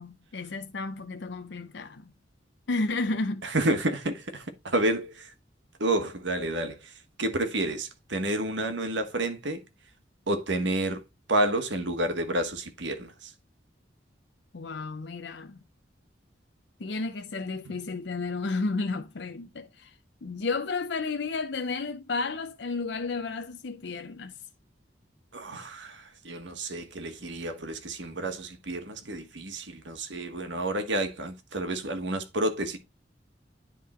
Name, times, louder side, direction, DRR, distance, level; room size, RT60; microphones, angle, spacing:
voice 1, 0.0-2.1 2.7-3.5 14.5-15.6 16.8-19.9 20.2-24.3, left 3 dB, 70° left, 0.6 m, -32 dB
voice 2, 3.4-5.3 5.8-6.9 7.2-9.6 10.3-11.0 11.3-13.3 25.3-32.8, right 1 dB, 80° right, 1.4 m, -30 dB
10.5 x 3.7 x 4.3 m
head